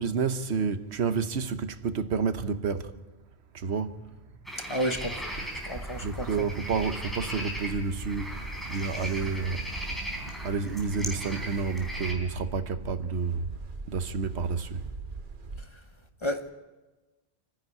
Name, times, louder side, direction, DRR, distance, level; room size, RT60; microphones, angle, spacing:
voice 1, 0.0-2.9 3.5-4.0 5.1-5.2 5.4-5.5 6.0-9.8 10.4-13.4 13.9-14.9, right 5 dB, 85° right, 1.3 m, -30 dB
sound 1, 4.4-12.1, equal, ahead, 3.9 m, -38 dB
voice 2, 4.7-5.2 5.7-6.5 16.2-16.5, equal, 30° left, 1.1 m, -31 dB
sound 2, 4.9-15.6, right 3 dB, 55° right, 1.3 m, -40 dB
27.5 x 10.5 x 9.7 m
omnidirectional pair, 1.1 m